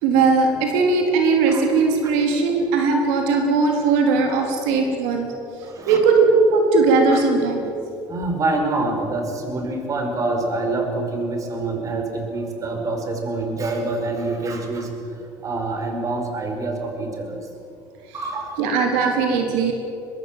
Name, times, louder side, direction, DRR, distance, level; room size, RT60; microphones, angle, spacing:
voice 1, 0.0-5.3 5.9-7.7 18.6-19.7, right 4 dB, 90° right, 2 dB, 4.0 m, -18 dB
voice 2, 5.6-6.0 7.1-7.2 8.1-14.9 15.4-17.4 18.1-18.5, right 2 dB, 35° right, 3 dB, 5.4 m, -26 dB
24.0 x 22.0 x 7.6 m, 2.8 s
cardioid pair, 115°, 9 cm